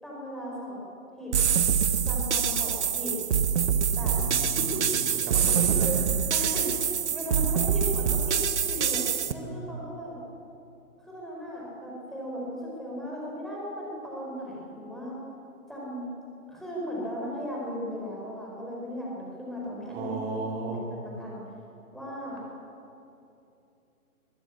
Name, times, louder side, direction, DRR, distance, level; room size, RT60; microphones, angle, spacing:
voice 1, 0.0-0.8 1.2-1.3 2.0-3.1 3.9-4.2 6.3-6.7 7.1-9.0 9.3-10.1 11.0-15.2 15.7-16.2 16.5-20.1 20.7-21.4 21.9-22.4, equal, ahead, -5 dB, 4.4 m, -37 dB
sound 1, 1.3-9.3, right 7 dB, 50° right, 1.0 m, -25 dB
voice 2, 3.9-6.3 9.3-9.6 19.8-20.9, right 2 dB, 15° right, 1 dB, 2.6 m, -34 dB
22.0 x 15.0 x 8.5 m, 2.8 s
figure-of-eight pair, 145°, 45 cm